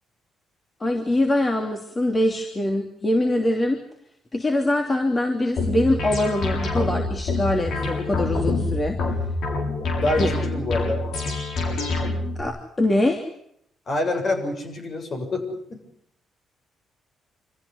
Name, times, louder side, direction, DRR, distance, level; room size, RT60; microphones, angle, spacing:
voice 1, 0.8-3.8 4.3-9.0 10.2-10.3 12.4-13.2, left 1 dB, 25° left, 3 dB, 3.0 m, -23 dB
sound 1, 5.6-12.4, left 3 dB, 70° left, 7.2 m, -26 dB
voice 2, 10.0-11.0 13.9-15.8, left 2 dB, 50° left, 5 dB, 7.2 m, -26 dB
26.0 x 15.0 x 9.9 m, 0.72 s
cardioid pair, 90°, 0 cm